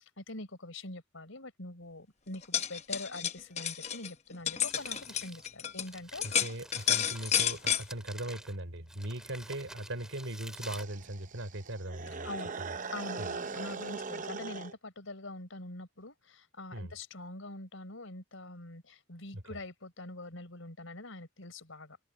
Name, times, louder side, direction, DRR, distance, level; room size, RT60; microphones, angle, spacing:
voice 1, 0.0-6.3 12.2-12.5 12.9-22.1, left 2 dB, 75° left, 4.1 m, -44 dB
sound 1, 2.3-5.9 6.2-7.8, left 9 dB, 35° left, 0.9 m, -31 dB
Crumpling crinkling, 4.4-11.7, right 1 dB, 5° right, 2.5 m, -50 dB
voice 2, 6.2-12.3 12.6-12.8 13.2-13.3 16.7-16.9 19.3-19.6, right 1 dB, 75° right, 3.8 m, -39 dB
sound 2, 10.6-14.7, right 4 dB, 40° right, 0.8 m, -40 dB
head